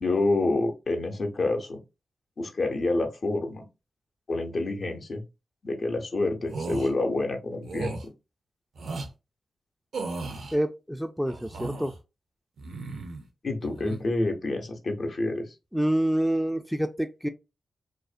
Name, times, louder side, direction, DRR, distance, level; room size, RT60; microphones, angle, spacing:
voice 1, 0.0-1.8 2.4-3.6 4.3-5.2 5.6-8.0 13.4-15.5, left 2 dB, 55° left, 0.6 m, -28 dB
sound 1, 6.4-6.9 7.7-8.0 8.8-9.1 9.9-10.6 11.3-12.0 12.6-13.3 13.6-14.0, right 3 dB, 70° right, 0.5 m, -35 dB
voice 2, 10.5-11.9 15.7-17.3, right 1 dB, ahead, 0.3 m, -27 dB
2.5 x 2.1 x 2.4 m
supercardioid pair, 45°, 0 cm